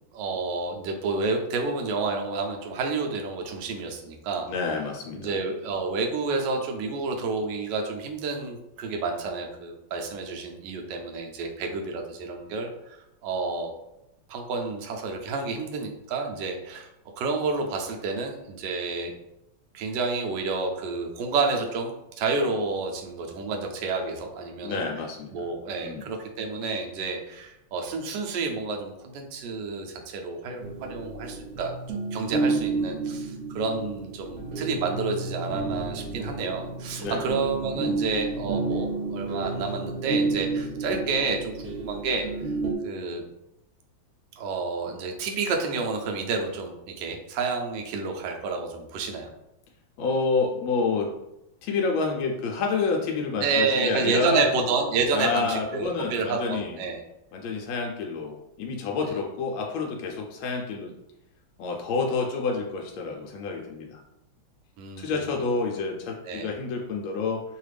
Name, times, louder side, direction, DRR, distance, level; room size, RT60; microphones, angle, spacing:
voice 1, 0.1-4.5 5.2-13.0 13.2-13.7 14.3-16.9 17.2-19.1 19.7-24.8 25.3-42.3 42.8-43.2 44.4-49.3 53.4-57.0 59.1-59.2 64.8-65.1 66.2-66.5, right 4 dB, 75° right, 2 dB, 1.1 m, -29 dB
voice 2, 4.5-5.4 24.6-25.3 25.8-26.0 37.0-37.3 37.7-37.9 50.0-51.1 51.6-54.4 55.1-56.8 57.3-60.9 61.6-64.0 65.0-67.4, left 4 dB, 80° left, 0 dB, 1.3 m, -28 dB
sound 1, 30.6-42.8, right 3 dB, 90° right, 1.4 m, -31 dB
3.3 x 2.4 x 3.2 m, 0.86 s
omnidirectional pair, 2.2 m